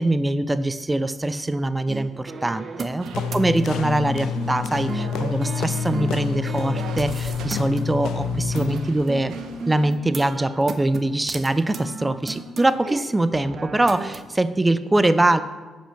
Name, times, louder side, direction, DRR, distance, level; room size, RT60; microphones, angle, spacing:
voice 1, 0.0-9.4 9.7-15.4, right 2 dB, 15° right, 12 dB, 0.4 m, -23 dB
sound 1, 1.9-8.8 9.1-13.0 13.3-14.2, right 4 dB, 45° right, 0.8 m, -34 dB
sound 2, 3.0-10.0, right 5 dB, 85° right, 1.0 m, -40 dB
sound 3, 3.1-8.9, left 8 dB, 85° left, 0.3 m, -28 dB
10.0 x 5.8 x 5.7 m, 1.3 s
cardioid pair, 90°, 0 cm